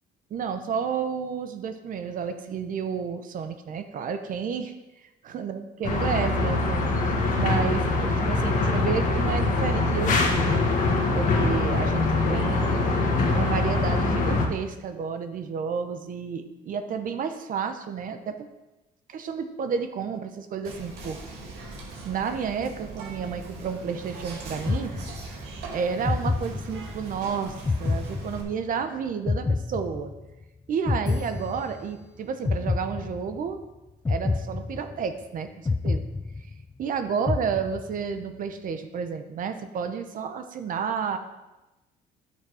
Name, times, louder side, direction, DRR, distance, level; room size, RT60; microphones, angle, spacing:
voice 1, 0.3-4.7 5.0-6.9 7.4-10.6 11.1-12.8 13.3-18.5 19.1-21.2 22.0-24.9 25.7-30.1 30.7-33.6 34.1-36.1 36.8-41.2, right 6 dB, 55° right, 8 dB, 1.0 m, -31 dB
sound 1, 5.8-14.5, left 3 dB, 50° left, 1.8 m, -23 dB
Whispering, 20.7-28.4, right 3 dB, 85° right, 2.1 m, -40 dB
sound 2, 24.7-25.5 26.0-27.1 27.7-28.8 29.3-30.4 30.9-32.0 32.4-33.5 34.0-35.2 35.7-36.8 37.3-38.1, left 3 dB, 15° left, 0.4 m, -28 dB
10.5 x 6.6 x 4.9 m, 1.0 s
cardioid pair, 110°, 17 cm